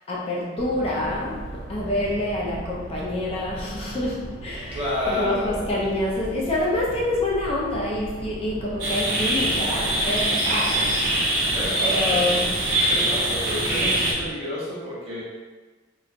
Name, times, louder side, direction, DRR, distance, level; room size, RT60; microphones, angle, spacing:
voice 1, 0.1-11.1 11.8-12.7, left 1 dB, 30° left, -4 dB, 0.4 m, -27 dB
sound 1, 0.6-14.3, right 2 dB, 50° right, 0.3 m, -38 dB
voice 2, 4.7-5.6 11.4-12.4 12.8-15.2, left 1 dB, 30° right, -7 dB, 0.7 m, -30 dB
sound 2, 8.8-14.1, right 1 dB, 90° right, 0.7 m, -23 dB
3.0 x 2.2 x 2.4 m, 1.3 s
head